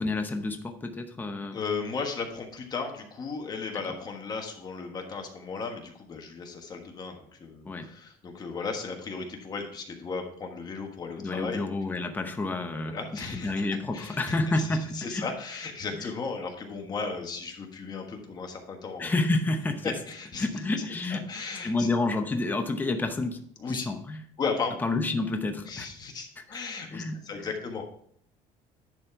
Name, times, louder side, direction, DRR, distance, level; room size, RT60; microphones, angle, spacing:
voice 1, 0.0-1.6 7.7-7.9 11.2-15.3 15.9-16.1 19.0-19.9 20.4-21.3 21.6-23.4 23.7-24.2 24.8-25.9 26.4-26.6 26.9-27.5, left 2 dB, 15° left, 5 dB, 0.8 m, -29 dB
voice 2, 1.5-11.6 11.9-12.0 12.7-13.5 13.9-19.1 19.8-20.5 21.1-21.9 23.6-23.9 24.4-24.7 25.7-27.9, left 4 dB, 30° left, 3 dB, 1.4 m, -35 dB
10.5 x 4.3 x 4.5 m, 0.63 s
cardioid pair, 145°, 14 cm